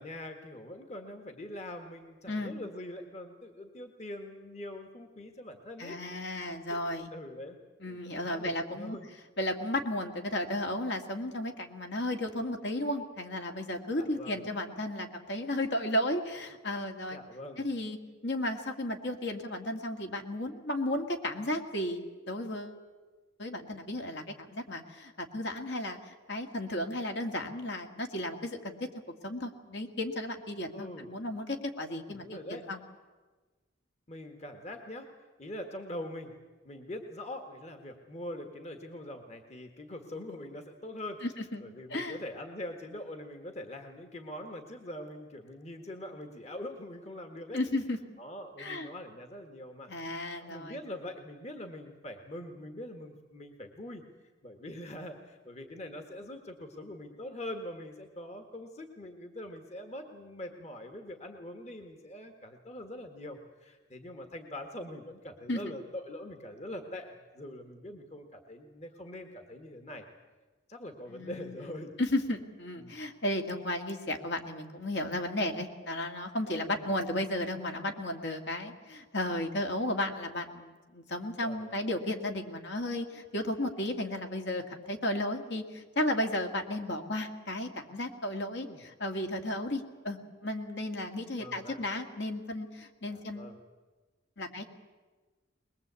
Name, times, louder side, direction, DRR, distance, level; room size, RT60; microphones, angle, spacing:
voice 1, 0.0-7.6 7.9-8.0 8.2-9.1 14.0-14.5 17.1-17.7 30.7-31.1 32.1-32.7 34.1-35.1 35.4-36.3 36.6-41.2 41.6-47.6 48.2-54.0 54.4-70.0 70.7-71.9 72.8-72.9 76.7-76.9 81.4-81.8 88.6-88.8 91.4-91.8 93.1-93.6, left 1 dB, 35° left, 6 dB, 1.7 m, -43 dB
voice 2, 5.8-7.1 7.8-9.0 9.4-17.2 17.6-18.0 18.2-22.8 23.4-28.8 29.2-32.8 41.2-41.6 41.9-42.2 47.5-48.0 48.6-48.9 49.9-50.8 65.5-65.6 71.1-71.7 72.0-93.5 94.4-94.6, left 1 dB, 60° left, 4 dB, 2.2 m, -34 dB
22.0 x 21.5 x 8.3 m, 1.3 s
head